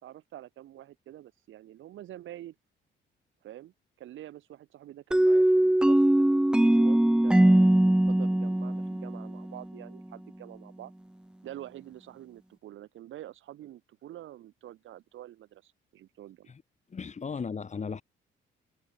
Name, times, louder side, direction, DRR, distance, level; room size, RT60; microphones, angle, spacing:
voice 1, 0.0-2.5 3.4-10.9 11.4-16.5 17.3-17.4, right 13 dB, 80° right, 2.8 m, -47 dB
sound 1, 5.1-9.8, right 1 dB, 5° right, 0.5 m, -21 dB
voice 2, 16.9-18.0, left 5 dB, 35° left, 2.4 m, -36 dB
cardioid pair, 90°, 20 cm